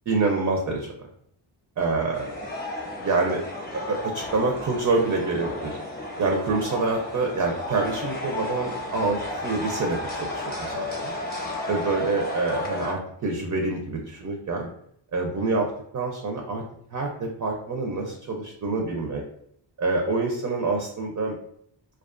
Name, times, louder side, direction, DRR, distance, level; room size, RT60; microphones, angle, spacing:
voice 1, 0.1-1.0 1.8-2.3 3.0-3.4 3.7-5.8 6.2-11.1 11.7-14.7 15.1-15.7 15.9-16.6 16.9-19.2 19.8-21.4, right 3 dB, 40° right, 1 dB, 0.4 m, -26 dB
sound 1, 2.1-12.9, left 2 dB, 20° left, 0.6 m, -33 dB
2.3 x 2.3 x 2.4 m, 0.69 s
wide cardioid pair, 90°, 47 cm